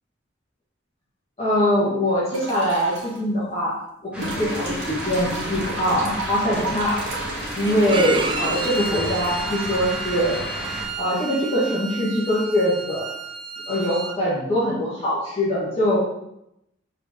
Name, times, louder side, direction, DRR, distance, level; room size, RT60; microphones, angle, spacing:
voice 1, 1.4-3.8 4.1-7.0 7.6-10.4 11.0-13.1 13.7-16.0, equal, 30° left, -9 dB, 2.0 m, -23 dB
sound 1, 2.3-3.2 4.2-11.2 12.6-12.7, right 1 dB, 80° right, 1.5 m, -33 dB
sound 2, 4.1-10.9, equal, 5° right, 1.4 m, -32 dB
Bowed string instrument, 7.9-14.1, right 4 dB, 25° right, 0.5 m, -31 dB
5.4 x 4.5 x 4.3 m, 0.80 s
head